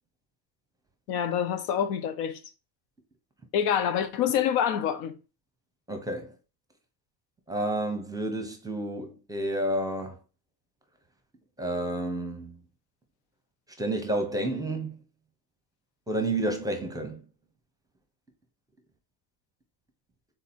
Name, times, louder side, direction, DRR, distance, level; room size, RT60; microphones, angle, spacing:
voice 1, 1.1-2.4 3.5-5.1, left 9 dB, 85° left, 0.7 m, -26 dB
voice 2, 5.9-6.4 7.5-10.2 11.6-12.6 13.8-15.0 16.1-17.2, right 1 dB, 10° right, 0.6 m, -30 dB
3.9 x 2.7 x 4.1 m
supercardioid pair, 120°, 45 cm